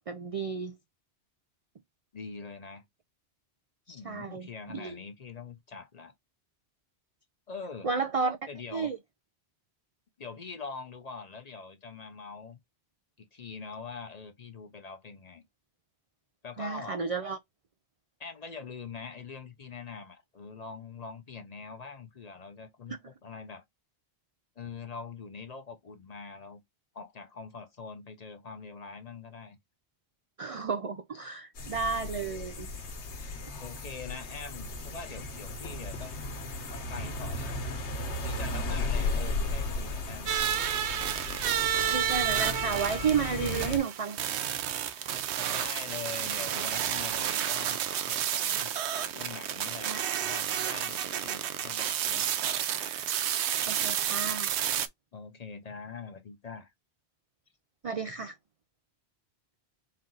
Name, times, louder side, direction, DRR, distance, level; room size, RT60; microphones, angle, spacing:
voice 1, 0.1-0.7 3.9-5.0 7.8-8.4 8.7-9.0 16.6-17.4 30.4-32.7 41.9-44.2 49.9-50.0 53.7-54.5 57.8-58.3, right 5 dB, 60° right, 0.3 m, -32 dB
voice 2, 2.1-2.8 3.9-6.1 7.5-7.9 8.5-8.9 10.2-12.6 13.2-15.4 16.4-17.0 18.2-23.6 24.6-26.6 26.9-29.6 33.6-36.3 36.7-37.6 38.2-40.7 42.8-43.9 45.5-48.7 49.1-49.9 50.2-52.3 55.1-56.7, left 5 dB, 45° left, 0.7 m, -43 dB
sound 1, 31.6-43.8, left 2 dB, 80° left, 1.3 m, -35 dB
sound 2, 40.3-54.9, right 10 dB, 80° right, 0.9 m, -31 dB
4.4 x 2.5 x 3.7 m
omnidirectional pair, 1.1 m